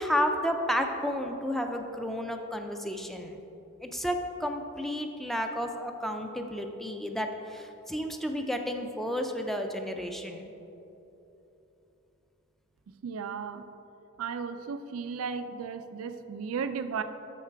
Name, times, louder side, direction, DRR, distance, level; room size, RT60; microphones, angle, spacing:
voice 1, 0.0-3.4 3.8-10.5, equal, ahead, 4 dB, 0.4 m, -32 dB
voice 2, 13.0-13.6 14.2-17.0, right 6 dB, 85° right, 9 dB, 0.4 m, -35 dB
7.1 x 6.6 x 4.6 m, 3.0 s
head